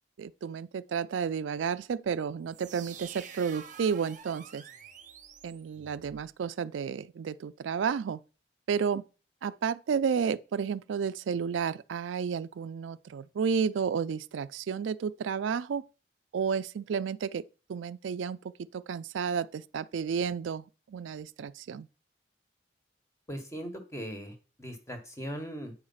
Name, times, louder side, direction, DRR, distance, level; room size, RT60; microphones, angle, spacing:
voice 1, 0.2-4.6 5.4-8.2 8.7-9.0 9.4-15.9 16.3-17.4 17.7-21.9, right 6 dB, 90° right, 0.4 m, -32 dB
sound 1, 2.5-6.3, right 7 dB, 45° right, 0.8 m, -48 dB
voice 2, 23.3-25.7, equal, 15° left, 1.4 m, -39 dB
8.7 x 4.8 x 5.6 m
head